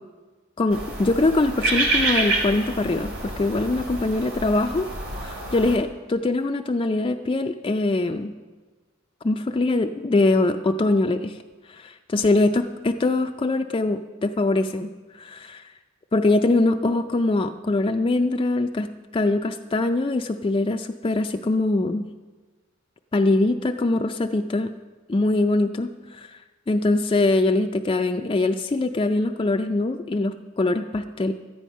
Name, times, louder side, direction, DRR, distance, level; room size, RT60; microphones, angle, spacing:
voice 1, 0.6-4.9 5.2-8.3 9.2-11.4 11.7-14.9 15.2-15.7 16.1-22.1 23.1-24.7 25.1-26.4 26.7-31.3, left 2 dB, 25° left, 5 dB, 0.4 m, -23 dB
sound 1, 0.7-5.8, right 2 dB, 80° right, 2.7 m, -27 dB
13.5 x 10.0 x 5.4 m, 1.3 s
head